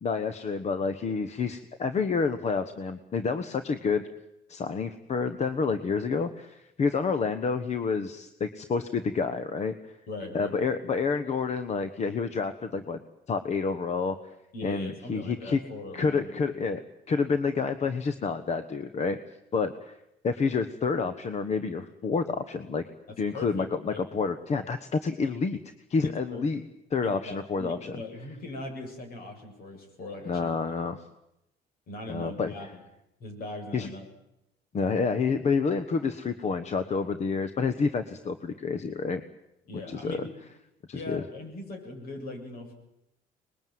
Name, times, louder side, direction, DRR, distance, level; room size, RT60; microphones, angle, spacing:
voice 1, 0.0-4.0 4.5-9.9 10.3-13.0 13.3-14.2 14.6-15.6 15.9-19.2 19.5-20.0 20.2-22.8 23.2-25.6 25.9-26.6 26.9-28.0 30.2-31.0 32.1-32.5 33.7-33.9 34.7-39.2 39.9-40.3 40.9-41.2, left 5 dB, 40° left, 11 dB, 1.3 m, -29 dB
voice 2, 10.1-10.6 14.5-16.3 23.1-24.0 26.0-26.5 27.0-30.6 31.9-32.7 33.2-34.1 39.7-40.3 40.9-42.7, left 2 dB, 65° left, 4 dB, 7.5 m, -40 dB
24.5 x 21.0 x 9.5 m, 0.85 s
cardioid pair, 110°, 17 cm